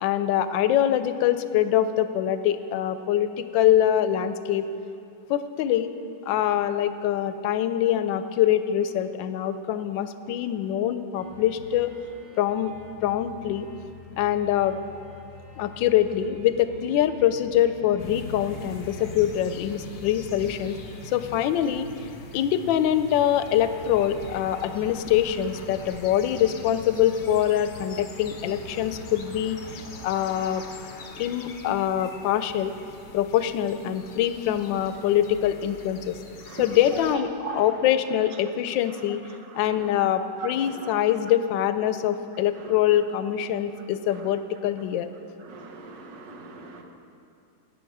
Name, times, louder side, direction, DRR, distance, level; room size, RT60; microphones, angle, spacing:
voice 1, 0.0-4.7 5.3-5.9 6.3-11.9 12.4-12.7 13.0-13.7 14.2-14.8 15.6-20.8 21.1-21.9 22.3-30.6 31.2-32.8 33.1-36.1 36.6-37.3 37.5-39.2 39.5-45.1, left 11 dB, 85° left, 11 dB, 1.3 m, -24 dB
sound 1, 11.1-30.0, right 1 dB, 90° right, 2.4 m, -46 dB
sound 2, 18.0-37.2, left 4 dB, 55° left, 0.8 m, -43 dB
voice 2, 36.5-37.9 38.9-40.1 40.4-40.9 42.6-42.7 44.1-44.3 45.4-46.8, right 4 dB, 70° right, 3 dB, 1.7 m, -39 dB
17.5 x 6.8 x 4.7 m, 2.5 s
omnidirectional pair, 2.0 m